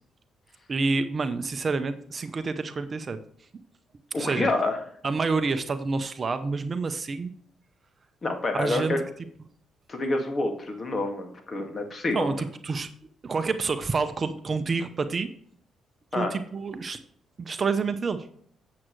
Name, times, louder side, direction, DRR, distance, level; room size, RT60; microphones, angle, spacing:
voice 1, 0.7-3.2 4.2-4.5 5.0-7.3 8.5-9.0 12.1-12.9 13.2-15.3 16.1-17.0 17.4-18.3, right 4 dB, 40° right, 10 dB, 0.7 m, -28 dB
voice 2, 4.1-4.8 8.2-9.0 9.9-12.3 16.1-16.3, left 2 dB, 35° left, 4 dB, 1.9 m, -27 dB
8.5 x 7.5 x 3.2 m, 0.63 s
cardioid pair, 90°, 0 cm